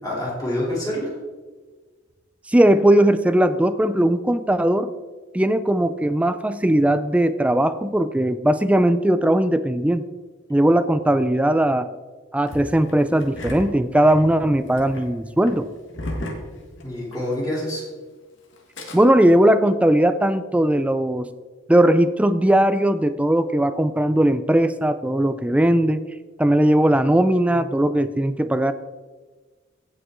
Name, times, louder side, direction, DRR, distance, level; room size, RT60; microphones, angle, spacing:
voice 1, 0.0-1.2 16.8-17.8, left 1 dB, 20° left, -6 dB, 3.1 m, -27 dB
voice 2, 2.5-4.9 5.3-10.0 10.5-11.9 12.3-15.7 18.9-21.3 21.7-26.0 26.4-28.7, right 1 dB, 5° right, 12 dB, 0.3 m, -18 dB
Engine starting, 12.5-17.3 17.6-17.7 18.5-19.0, left 1 dB, 65° left, 1.5 m, -35 dB
16.0 x 5.5 x 3.7 m, 1.4 s
head